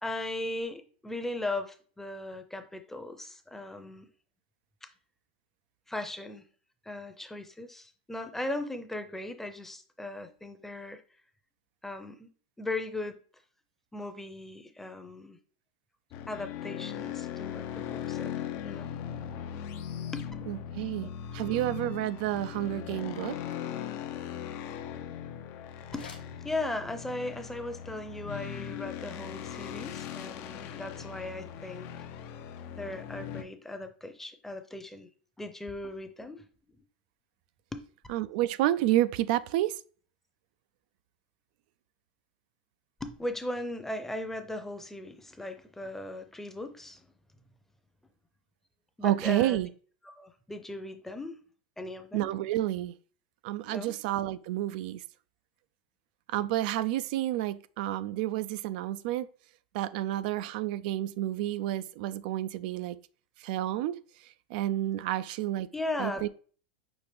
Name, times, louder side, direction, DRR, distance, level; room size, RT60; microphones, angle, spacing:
voice 1, 0.0-4.1 5.9-6.4 6.8-11.0 11.8-12.3 12.6-13.2 13.9-15.4 16.3-18.3 18.6-18.9 20.1-20.2 21.0-21.1 25.9-32.1 32.8-35.1 35.4-36.4 36.7-36.8 37.7-37.8 43.0-47.1 49.0-49.6 50.0-51.4 51.8-52.3 53.7-53.9 65.7-66.3, left 2 dB, 5° left, 0.7 m, -38 dB
sound 1, 16.1-33.4, left 9 dB, 50° left, 0.6 m, -39 dB
voice 2, 20.5-23.4 38.1-39.8 49.0-49.7 52.1-52.9 53.4-55.0 56.3-59.3 59.7-63.0 63.4-65.7 66.0-66.3, right 14 dB, 65° right, 0.3 m, -30 dB
sound 2, 25.7-27.1, left 5 dB, 90° left, 1.0 m, -53 dB
5.9 x 2.5 x 3.4 m
hypercardioid pair, 110°, 5 cm